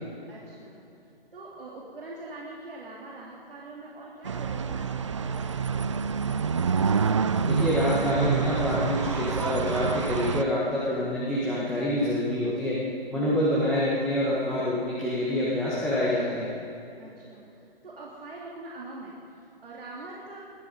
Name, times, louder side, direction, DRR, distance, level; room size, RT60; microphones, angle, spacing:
voice 1, 0.3-0.8 1.3-5.9 13.1-13.5 17.0-20.4, right 2 dB, 65° right, -4 dB, 2.9 m, -43 dB
sound 1, 4.3-10.4, right 6 dB, 30° right, 0.4 m, -27 dB
voice 2, 7.4-12.8 13.1-16.5, left 1 dB, 5° left, -9 dB, 1.5 m, -26 dB
21.5 x 12.5 x 5.4 m, 2.7 s
figure-of-eight pair, 145°, 30 cm